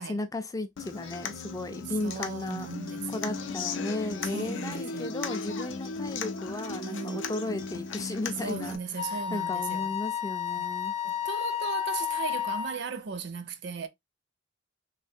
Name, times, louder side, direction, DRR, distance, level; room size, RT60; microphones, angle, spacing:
voice 1, 0.0-2.7 3.1-10.9, left 2 dB, 15° left, 0.3 m, -35 dB
Human voice / Acoustic guitar, 0.8-8.8, left 4 dB, 70° left, 0.5 m, -36 dB
voice 2, 2.0-3.5 4.3-5.4 6.8-7.2 8.4-9.9 10.6-10.7 11.0-13.9, right 5 dB, 60° right, 0.5 m, -37 dB
Wind instrument woodwind instrument, 9.0-12.8, left 9 dB, 35° left, 0.7 m, -31 dB
3.2 x 2.5 x 2.6 m
head